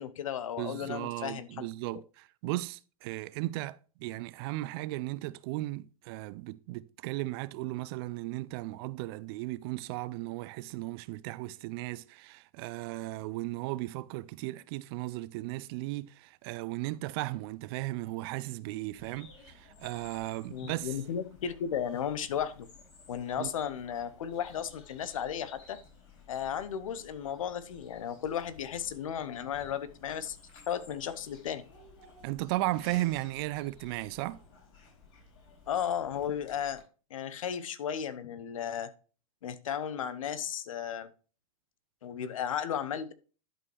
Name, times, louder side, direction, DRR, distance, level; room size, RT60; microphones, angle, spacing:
voice 1, 0.0-1.7 20.5-22.7 23.1-25.8 26.3-30.4 30.7-31.6 35.7-36.8 37.1-38.9 39.4-41.1 42.0-43.1, left 9 dB, 65° left, 0.9 m, -34 dB
voice 2, 0.6-20.9 23.4-23.5 32.2-34.4, right 18 dB, 45° right, 0.4 m, -36 dB
Bird vocalization bird call bird song, 19.0-36.8, left 4 dB, 50° left, 4.5 m, -55 dB
11.0 x 5.3 x 3.2 m
figure-of-eight pair, 100°, 18 cm